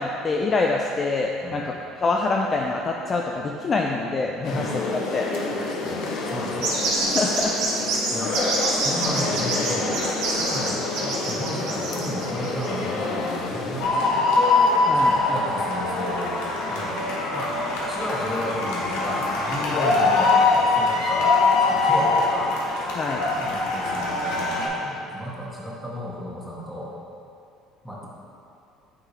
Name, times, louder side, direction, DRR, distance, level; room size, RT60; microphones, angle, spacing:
voice 1, 0.0-4.6 5.1-5.3 5.6-5.7 7.1-7.5 14.9-15.2 19.7-19.9 23.0-23.2, left 3 dB, 35° left, 0 dB, 0.4 m, -25 dB
sound 1, 4.4-13.9, left 3 dB, 65° left, 0.8 m, -29 dB
voice 2, 5.8-6.8 8.1-8.4 8.6-14.3 15.0-16.4 16.7-17.1 17.3-21.3 21.7-22.6 23.4-26.9 27.8-28.1, equal, 5° left, -6 dB, 1.5 m, -33 dB
sound 2, 6.6-12.7, right 2 dB, 75° right, 1.3 m, -26 dB
sound 3, 13.8-24.7, left 3 dB, 90° left, 1.0 m, -22 dB
9.0 x 3.7 x 3.2 m, 2.7 s
supercardioid pair, 100°, 0 cm